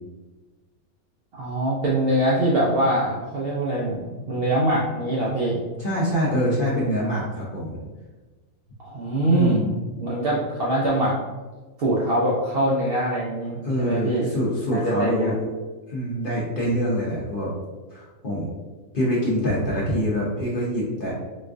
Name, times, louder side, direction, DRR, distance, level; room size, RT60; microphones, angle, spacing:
voice 1, 1.3-5.6 8.8-9.6 10.0-11.1 11.8-14.3 14.7-15.4, right 1 dB, 65° right, -5 dB, 0.6 m, -23 dB
voice 2, 5.8-7.7 9.3-9.7 13.6-15.4 15.9-17.5 17.9-18.5 18.9-21.1, equal, 50° left, -5 dB, 0.7 m, -25 dB
4.0 x 2.4 x 2.4 m, 1.3 s
omnidirectional pair, 1.5 m